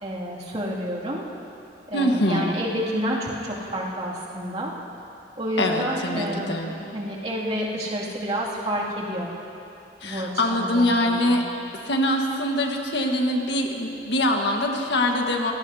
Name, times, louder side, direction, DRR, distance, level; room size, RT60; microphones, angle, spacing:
voice 1, 0.0-1.2 1.9-4.7 5.4-9.3 10.0-11.3, equal, 35° right, -5 dB, 2.5 m, -29 dB
voice 2, 1.9-2.5 5.6-6.7 10.0-11.4 11.8-15.5, left 1 dB, 85° left, 2 dB, 1.5 m, -23 dB
26.0 x 17.5 x 2.8 m, 2.9 s
head